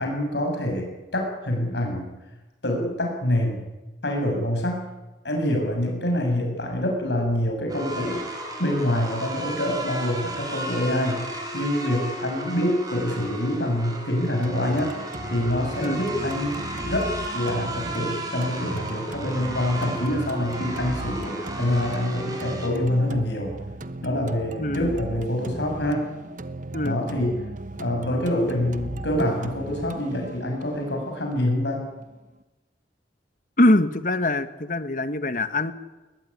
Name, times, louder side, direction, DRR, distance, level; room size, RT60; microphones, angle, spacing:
voice 1, 0.0-2.1 2.6-3.6 4.0-4.8 5.2-8.3 8.6-11.2 11.5-14.9 15.3-16.6 16.8-23.6 24.0-26.0 26.8-27.4 27.8-31.9, left 1 dB, 75° left, 2 dB, 7.3 m, -26 dB
sound 1, 7.7-22.7, right 1 dB, 20° right, 5.0 m, -34 dB
sound 2, 14.4-32.4, right 2 dB, 45° right, 1.0 m, -37 dB
voice 2, 24.6-25.0 26.7-27.0 33.6-35.7, left 1 dB, 45° left, 12 dB, 1.4 m, -23 dB
21.0 x 20.5 x 9.9 m, 1.1 s
head